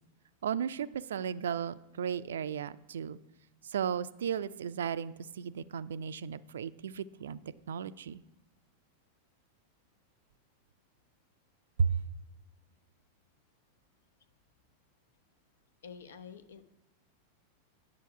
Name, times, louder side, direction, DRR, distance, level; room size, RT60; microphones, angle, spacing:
voice 1, 0.4-3.2 3.6-7.4 7.7-8.2 11.8-12.0, right 7 dB, 65° right, 15 dB, 0.4 m, -34 dB
voice 2, 15.8-16.6, left 6 dB, 65° left, 10 dB, 0.9 m, -48 dB
10.5 x 7.0 x 4.8 m, 1.0 s
figure-of-eight pair, 90°, 0 cm